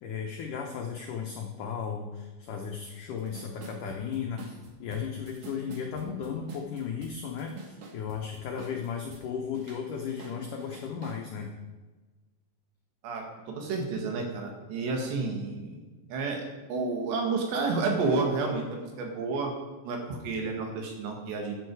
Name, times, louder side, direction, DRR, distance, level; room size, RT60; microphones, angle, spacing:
voice 1, 0.0-11.5, left 7 dB, 90° left, 2 dB, 1.8 m, -35 dB
sound 1, 2.8-2.9 3.2-9.3 9.5-11.2, right 4 dB, 60° right, 2.3 m, -48 dB
voice 2, 13.0-15.8 16.1-16.4 16.7-19.5 19.8-21.6, right 3 dB, 75° right, 2 dB, 4.0 m, -30 dB
14.5 x 9.0 x 4.7 m, 1.3 s
omnidirectional pair, 5.2 m